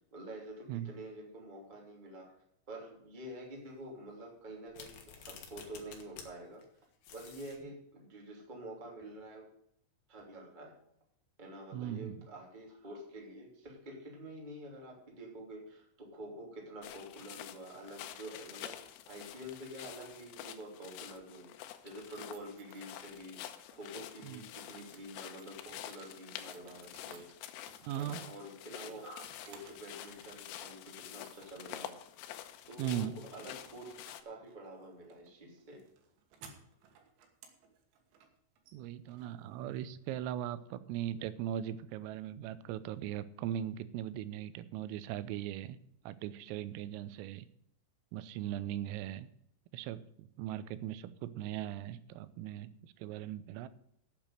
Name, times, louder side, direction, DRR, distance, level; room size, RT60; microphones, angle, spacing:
voice 1, 0.1-2.3 2.7-6.6 7.1-9.5 10.1-10.7 11.4-21.5 21.8-23.4 23.7-27.3 27.9-31.9 32.7-35.8, right 1 dB, 15° right, -1 dB, 1.7 m, -48 dB
sound 1, 4.7-6.3 6.6-6.7 7.0-7.6, left 7 dB, 65° left, 1.9 m, -51 dB
voice 2, 11.7-12.2 24.2-24.4 27.8-28.2 32.8-33.2 38.7-45.8 46.1-47.5 48.1-49.3 49.7-53.7, right 11 dB, 85° right, 14 dB, 3.3 m, -39 dB
sound 2, 16.8-34.2, left 12 dB, 85° left, 3.5 m, -48 dB
sound 3, 21.7-23.7 24.2-29.9 30.2-30.8 31.2-31.8 32.1-40.1, right 6 dB, 65° right, 3.4 m, -61 dB
9.0 x 8.6 x 7.8 m, 0.72 s
omnidirectional pair, 6.0 m